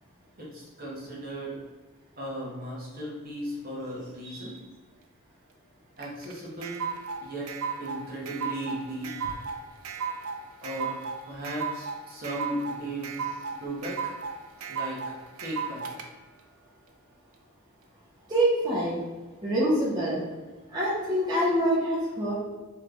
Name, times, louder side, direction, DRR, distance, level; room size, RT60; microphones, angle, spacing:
voice 1, 0.4-1.6 2.2-4.6 6.0-6.8 7.2-7.5 7.8-9.4 10.6-11.0 11.3-13.1 13.5-14.2 14.7-15.0 15.4-15.9, right 1 dB, 45° right, -5 dB, 1.2 m, -36 dB
sound 1, 6.0-16.0, right 5 dB, 75° right, 0.5 m, -35 dB
voice 2, 18.3-19.0 19.4-20.2 20.7-22.3, right 1 dB, 20° right, -9 dB, 0.9 m, -25 dB
3.8 x 3.2 x 3.3 m, 1.3 s
head